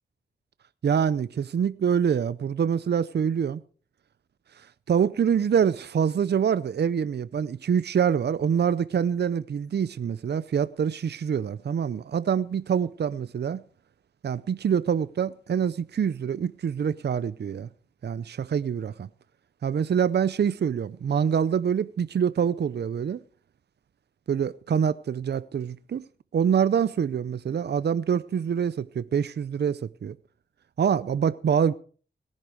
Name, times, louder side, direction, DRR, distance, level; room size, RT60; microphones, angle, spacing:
voice 1, 0.8-3.6 4.9-13.6 14.2-17.7 18.0-19.1 19.6-23.2 24.3-26.0 26.3-30.2 30.8-31.7, right 7 dB, 65° right, 0.6 m, -25 dB
18.0 x 11.0 x 5.1 m
cardioid pair, 70°, 19 cm